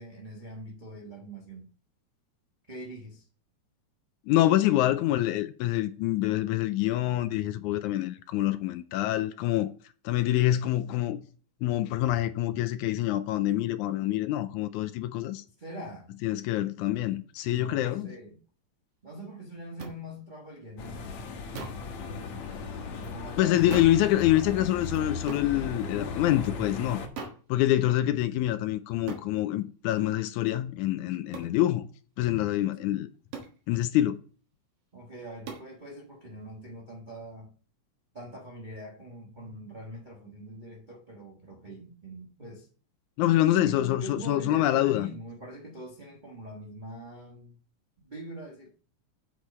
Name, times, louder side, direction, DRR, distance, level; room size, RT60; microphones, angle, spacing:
voice 1, 0.0-1.7 2.7-3.3 5.1-5.2 15.6-16.1 17.5-18.4 19.0-21.0 22.9-23.8 34.9-37.5 38.1-42.7 43.5-47.6 48.0-48.7, right 1 dB, 80° right, 0.4 m, -43 dB
voice 2, 4.3-9.7 10.1-11.2 11.6-15.4 16.2-18.1 23.4-27.0 27.5-31.8 32.2-33.1 33.7-34.2 43.2-45.1, left 14 dB, 85° left, 2.0 m, -26 dB
sound 1, 19.8-20.0 21.5-21.9 23.7-24.1 25.3-25.5 27.2-27.5 29.1-29.3 31.3-31.6 33.3-33.6 35.5-35.7, right 5 dB, 55° right, 2.2 m, -39 dB
sound 2, 20.8-27.1, left 4 dB, 70° left, 2.4 m, -36 dB
8.1 x 6.0 x 4.2 m
omnidirectional pair, 3.4 m